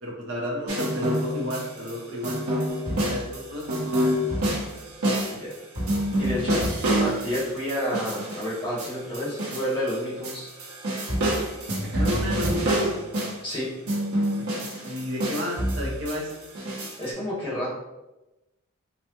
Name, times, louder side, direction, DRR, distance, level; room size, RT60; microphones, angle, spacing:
voice 1, 0.0-2.4 2.9-4.4 11.8-13.0 14.5-16.4, equal, 60° right, -3 dB, 0.7 m, -33 dB
sound 1, 0.7-1.9 2.2-10.0 10.2-13.5 13.9-17.0, right 1 dB, 90° right, 1.1 m, -27 dB
voice 2, 6.0-6.6 7.0-10.5 13.4-13.7 17.0-17.7, equal, 25° left, -8 dB, 1.3 m, -30 dB
4.1 x 2.2 x 2.9 m, 1.0 s
head